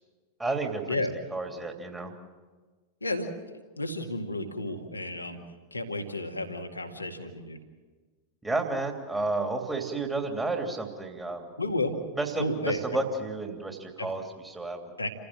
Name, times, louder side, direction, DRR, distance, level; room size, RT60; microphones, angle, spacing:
voice 1, 0.4-1.0 1.3-2.1 8.4-11.5 12.1-14.9, right 3 dB, 10° right, 3 dB, 3.0 m, -31 dB
voice 2, 3.0-5.4 5.7-7.6 11.6-12.0 12.4-12.8 14.0-14.1 15.0-15.1, left 2 dB, 80° left, 4 dB, 2.1 m, -32 dB
28.5 x 15.5 x 7.5 m, 1.4 s
figure-of-eight pair, 90°, 0 cm